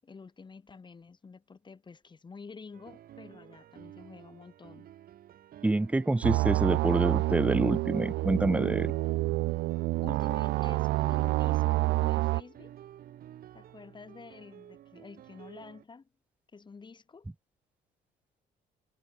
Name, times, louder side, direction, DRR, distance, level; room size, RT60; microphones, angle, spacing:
voice 1, 0.0-4.9 10.0-12.7 13.5-16.1 16.5-17.3, left 4 dB, 25° left, 7.2 m, -49 dB
sound 1, 2.7-15.8, right 11 dB, 60° right, 3.8 m, -51 dB
voice 2, 5.6-8.9, right 2 dB, 10° right, 0.6 m, -27 dB
sound 2, 6.2-12.4, right 20 dB, 85° right, 0.8 m, -28 dB
cardioid pair, 110°, 17 cm